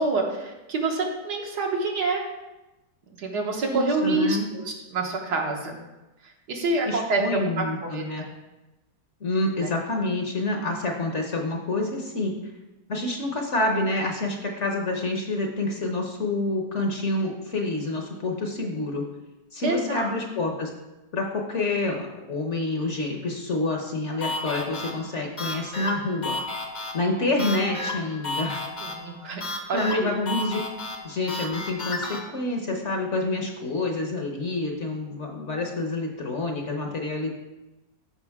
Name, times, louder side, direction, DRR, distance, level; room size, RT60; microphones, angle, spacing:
voice 1, 0.0-2.2 3.2-5.8 6.5-8.3 19.6-20.1 28.8-29.4 29.7-30.1, right 3 dB, 70° right, 0 dB, 1.9 m, -27 dB
voice 2, 3.6-4.5 6.9-8.2 9.2-12.3 12.9-19.0 19.5-20.7 21.1-26.4 26.9-28.6 29.7-30.6 31.0-37.4, left 2 dB, 50° left, 2 dB, 1.1 m, -28 dB
sound 1, 24.2-32.2, left 2 dB, 35° left, 0.8 m, -33 dB
13.5 x 5.0 x 3.6 m, 1.0 s
omnidirectional pair, 1.8 m